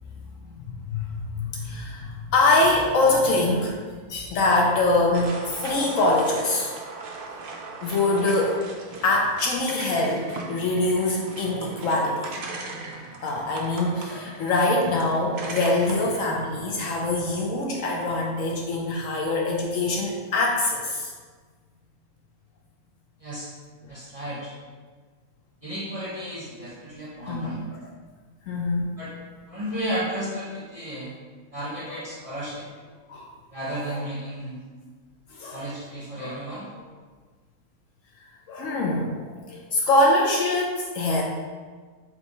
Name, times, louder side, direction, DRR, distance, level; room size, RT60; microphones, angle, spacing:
voice 1, 0.9-3.8 4.1-6.7 7.8-8.6 9.0-12.3 13.2-21.1 27.3-27.6 28.5-28.9 31.9-32.0 33.1-33.3 33.9-34.0 35.3-35.6 36.2-36.6 38.5-41.2, left 2 dB, 70° left, -1 dB, 0.9 m, -24 dB
sound 1, 5.1-16.2, right 3 dB, 90° right, 0.4 m, -38 dB
voice 2, 23.2-23.5 23.9-24.5 25.6-27.6 29.0-29.1 29.5-31.1 31.5-32.7 33.5-34.6 35.5-36.7, right 1 dB, 30° right, -8 dB, 0.8 m, -33 dB
3.4 x 2.9 x 4.0 m, 1.5 s
omnidirectional pair, 1.6 m